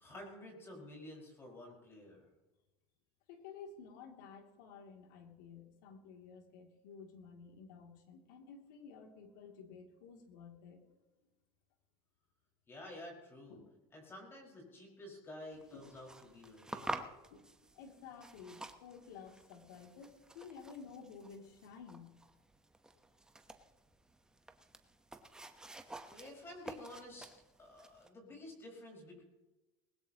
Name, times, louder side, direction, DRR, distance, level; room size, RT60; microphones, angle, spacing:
voice 1, 0.0-2.3 12.7-13.6 13.9-17.0 26.1-27.3 27.6-29.2, left 1 dB, 25° left, 0 dB, 5.2 m, -51 dB
voice 2, 3.3-10.8 13.5-13.7 15.7-15.8 17.2-17.5 17.7-22.1 25.9-26.2, left 6 dB, 85° left, 3 dB, 2.7 m, -53 dB
sound 1, 15.5-28.1, right 2 dB, 5° right, 1.0 m, -50 dB
20.5 x 18.5 x 3.0 m, 1.1 s
supercardioid pair, 135°, 10 cm